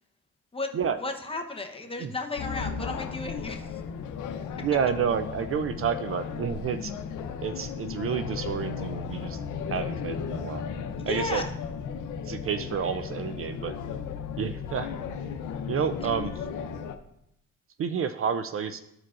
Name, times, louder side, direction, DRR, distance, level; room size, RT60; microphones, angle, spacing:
voice 1, 1.0-3.8 11.0-11.5 16.0-16.1, left 3 dB, 20° left, 3 dB, 0.8 m, -34 dB
sound 1, 2.4-17.0, left 6 dB, 80° left, 0.7 m, -35 dB
voice 2, 4.6-6.9 7.4-9.4 9.7-10.6 11.1-11.4 12.2-13.8 14.4-14.9 15.7-16.5 17.8-18.8, right 7 dB, 45° right, 11 dB, 0.4 m, -29 dB
13.5 x 4.6 x 2.5 m, 0.80 s
cardioid pair, 90°, 30 cm